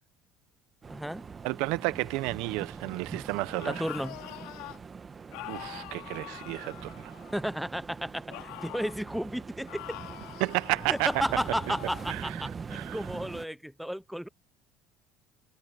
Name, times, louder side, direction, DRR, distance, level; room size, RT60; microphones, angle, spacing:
sound 1, 0.8-13.5, right 5 dB, 20° right, 1.1 m, -43 dB
voice 1, 0.9-1.2 3.7-4.2 7.3-10.0 10.9-14.3, equal, ahead, 0.5 m, -33 dB
voice 2, 1.4-3.8 5.5-7.1 10.4-11.1 12.1-12.4 12.7-13.0, right 21 dB, 80° right, 0.8 m, -31 dB
sound 2, 3.4-4.8 5.3-7.6 8.3-9.0 9.7-12.2, left 20 dB, 80° left, 2.7 m, -44 dB
cardioid pair, 155°, 0 cm